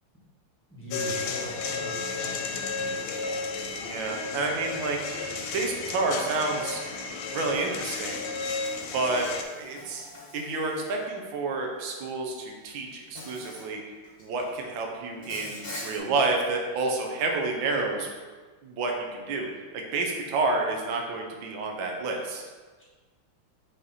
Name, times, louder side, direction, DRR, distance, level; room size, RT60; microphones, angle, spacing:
voice 1, 0.7-2.9, left 1 dB, 5° left, -6 dB, 1.4 m, -40 dB
sound 1, 0.9-9.4, left 4 dB, 85° left, 1.5 m, -33 dB
voice 2, 3.8-5.0 5.5-6.8 7.3-8.3 8.9-9.3 9.6-10.1 10.3-13.8 14.2-18.1 18.6-19.5 19.7-22.4, right 3 dB, 70° right, 2 dB, 1.5 m, -29 dB
Insect, 7.5-7.7 8.6-11.2 12.3-12.5 13.2-13.7 14.0-14.5 15.2-16.0, left 1 dB, 35° left, 1.1 m, -43 dB
5.4 x 4.4 x 4.0 m, 1.4 s
omnidirectional pair, 2.3 m